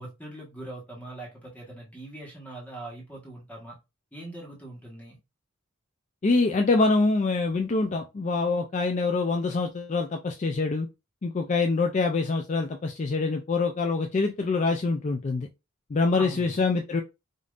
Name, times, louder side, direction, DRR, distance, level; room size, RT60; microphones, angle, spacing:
voice 1, 0.0-3.7 4.1-5.2 16.1-16.6, right 1 dB, 5° left, -4 dB, 1.2 m, -41 dB
voice 2, 6.2-10.9 11.2-15.5 15.9-17.0, left 3 dB, 35° left, 4 dB, 0.4 m, -25 dB
5.1 x 2.7 x 2.4 m, 0.25 s
head